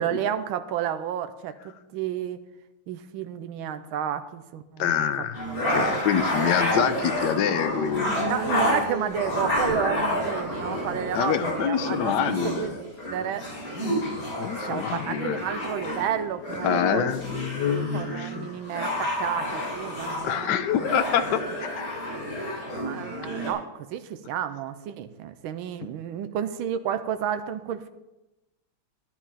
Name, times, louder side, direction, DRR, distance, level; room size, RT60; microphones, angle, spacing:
voice 1, 0.0-2.4 2.9-5.1 5.6-6.0 8.3-13.5 14.7-17.2 17.6-20.8 22.8-27.9, right 9 dB, 80° right, 10 dB, 1.5 m, -31 dB
voice 2, 4.8-5.4 5.7-8.1 11.1-12.8 14.4-15.4 16.6-18.5 20.2-21.8, left 9 dB, 65° left, 10 dB, 1.2 m, -26 dB
sound 1, 5.3-23.5, equal, 50° left, 4.0 m, -29 dB
13.5 x 9.9 x 4.2 m, 1.0 s
omnidirectional pair, 2.3 m